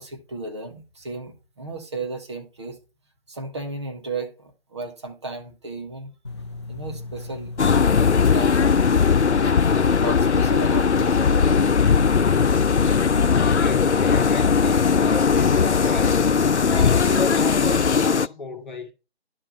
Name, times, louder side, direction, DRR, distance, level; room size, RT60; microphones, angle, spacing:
voice 1, 0.0-2.8 3.3-6.1 6.7-8.7 9.4-12.0, right 3 dB, 25° right, 1.2 m, -35 dB
sound 1, 6.2-14.8, left 3 dB, 25° left, 0.7 m, -36 dB
sound 2, 7.6-18.3, left 5 dB, 90° left, 0.6 m, -19 dB
voice 2, 13.3-16.2 16.6-18.9, left 3 dB, 45° left, 1.8 m, -33 dB
11.0 x 4.6 x 5.5 m
figure-of-eight pair, 155°, 33 cm